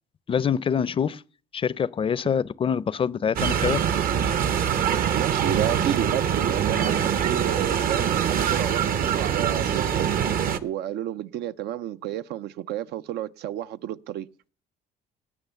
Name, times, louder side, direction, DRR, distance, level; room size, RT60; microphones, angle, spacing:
voice 1, 0.3-1.2 1.5-3.8, left 7 dB, 30° left, 0.5 m, -25 dB
sound 1, 3.4-10.6, right 8 dB, 60° right, 0.9 m, -24 dB
voice 2, 5.1-10.1 10.6-14.3, right 12 dB, 75° right, 0.6 m, -31 dB
18.5 x 6.3 x 6.9 m
cardioid pair, 110°, 17 cm